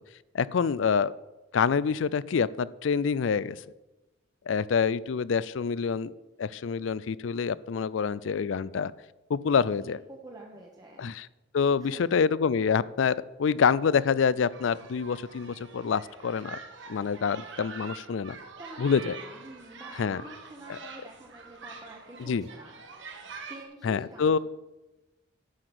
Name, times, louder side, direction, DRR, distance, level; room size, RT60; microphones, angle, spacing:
voice 1, 0.3-1.1 1.5-3.6 4.5-6.1 6.4-8.9 9.3-10.0 11.0-11.3 11.5-16.6 16.9-18.4 18.8-19.2 20.0-20.2 20.7-20.8 22.2-22.4 23.8-24.4, left 6 dB, 75° left, 20 dB, 0.4 m, -26 dB
voice 2, 9.8-11.1 11.8-12.2 18.6-22.7 23.5-24.4, right 1 dB, 20° right, -1 dB, 1.1 m, -47 dB
sound 1, 14.5-23.6, right 4 dB, 65° right, 1.7 m, -45 dB
11.5 x 5.8 x 7.9 m, 1.1 s
head